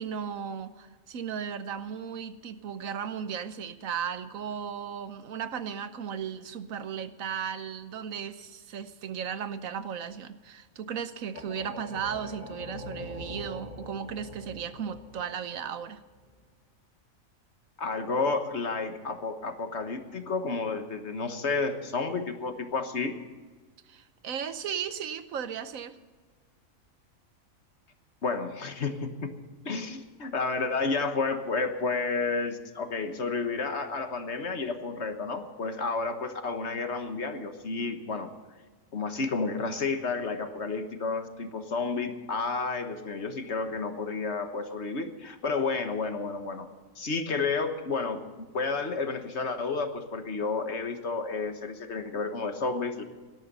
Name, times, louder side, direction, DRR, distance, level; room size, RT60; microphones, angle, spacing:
voice 1, 0.0-16.0 23.9-26.0, right 7 dB, 75° right, 12 dB, 1.3 m, -36 dB
sound 1, 11.3-16.3, left 1 dB, 30° left, 1.8 m, -43 dB
voice 2, 17.8-23.1 28.2-29.3 29.6-38.3 38.9-46.7 46.9-53.0, left 4 dB, 55° left, 7 dB, 1.6 m, -31 dB
18.0 x 12.5 x 5.5 m, 1.4 s
omnidirectional pair, 1.4 m